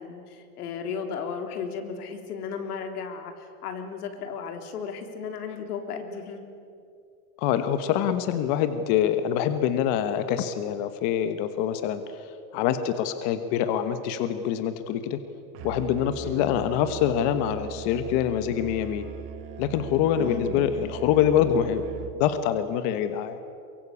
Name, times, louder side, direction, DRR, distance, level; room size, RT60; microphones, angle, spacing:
voice 1, 0.0-6.4 16.2-16.4 20.2-20.6, left 6 dB, 90° left, 5 dB, 3.6 m, -35 dB
voice 2, 7.4-12.3 12.5-15.2 15.6-19.1 19.6-21.8 22.2-23.4, left 9 dB, 40° left, 10 dB, 1.3 m, -25 dB
Musical instrument, 15.5-22.3, right 9 dB, 30° right, 1.1 m, -40 dB
23.5 x 23.0 x 8.6 m, 2.5 s
supercardioid pair, 165°, 44 cm